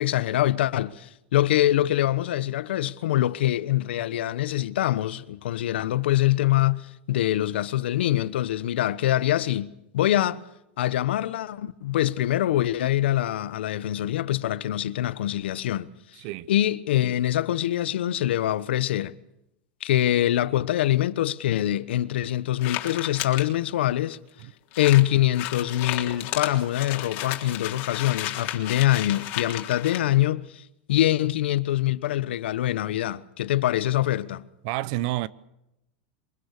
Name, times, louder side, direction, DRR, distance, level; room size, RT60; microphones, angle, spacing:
voice 1, 0.0-10.4 10.8-15.9 16.5-19.1 19.8-24.2 24.8-34.4, left 13 dB, 80° left, 1.1 m, -24 dB
voice 2, 16.2-16.5 24.4-24.5 34.6-35.3, right 17 dB, 50° right, 0.8 m, -29 dB
sound 1, 22.6-23.4 24.1-24.2 24.4-24.5 24.7-30.0, left 14 dB, 45° left, 3.5 m, -33 dB
24.0 x 23.5 x 6.6 m
supercardioid pair, 145°, 6 cm